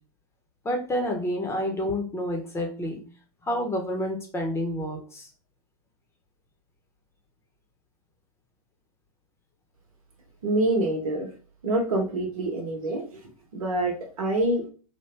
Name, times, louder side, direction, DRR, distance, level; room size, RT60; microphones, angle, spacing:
voice 1, 0.6-3.0 3.4-5.3, left 1 dB, 15° left, 2 dB, 0.8 m, -29 dB
voice 2, 10.4-11.3 11.6-14.7, right 1 dB, 70° right, 1 dB, 1.0 m, -26 dB
3.3 x 2.2 x 3.3 m, 0.38 s
hypercardioid pair, 110°, 19 cm